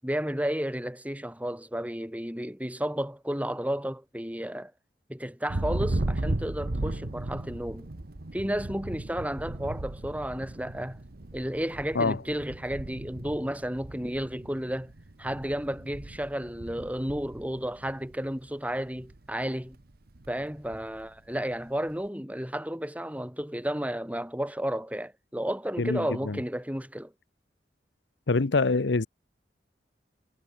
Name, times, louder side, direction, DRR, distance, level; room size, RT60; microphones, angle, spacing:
voice 1, 0.0-4.7 5.1-7.9 8.3-11.0 11.3-14.9 15.2-19.8 20.3-27.1, equal, 10° right, 6.9 m, -32 dB
Thunder, 5.5-18.4 18.7-19.3 19.6-21.1, right 1 dB, 60° right, 1.2 m, -36 dB
voice 2, 25.8-26.4 28.3-29.1, left 3 dB, 75° left, 0.8 m, -25 dB
head